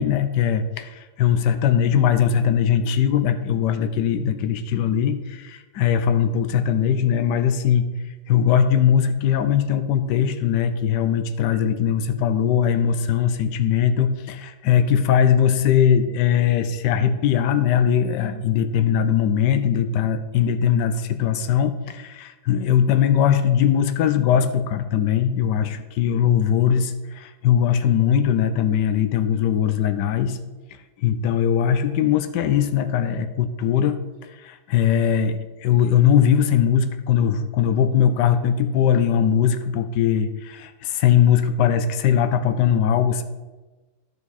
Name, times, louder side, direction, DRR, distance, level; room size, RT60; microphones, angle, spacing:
voice 1, 0.0-7.9 8.3-30.4 31.0-34.0 34.4-43.2, left 8 dB, 80° left, 9 dB, 1.3 m, -20 dB
11.0 x 7.0 x 4.1 m, 1.2 s
omnidirectional pair, 1.8 m